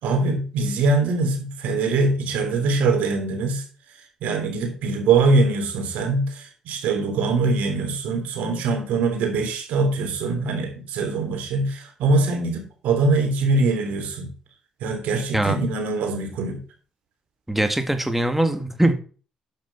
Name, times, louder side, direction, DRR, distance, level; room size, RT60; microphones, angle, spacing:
voice 1, 0.0-3.6 4.2-14.3 14.8-16.6, right 3 dB, 80° right, 3 dB, 3.3 m, -23 dB
voice 2, 17.5-18.9, right 1 dB, 5° right, 8 dB, 1.8 m, -21 dB
9.1 x 6.1 x 5.6 m, 0.38 s
cardioid pair, 75°, 2 cm